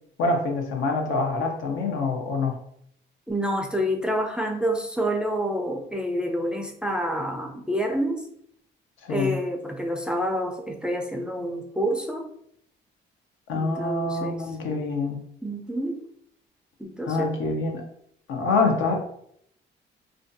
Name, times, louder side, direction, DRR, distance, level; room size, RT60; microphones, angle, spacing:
voice 1, 0.2-2.6 9.0-9.4 13.5-15.2 17.0-17.8 18.3-19.0, left 3 dB, 80° left, 2 dB, 0.6 m, -25 dB
voice 2, 3.3-8.2 9.1-12.3 13.5-14.4 15.4-16.0 16.8-17.3, equal, 5° right, 3 dB, 0.3 m, -28 dB
2.4 x 2.2 x 2.6 m, 0.70 s
cardioid pair, 90°, 20 cm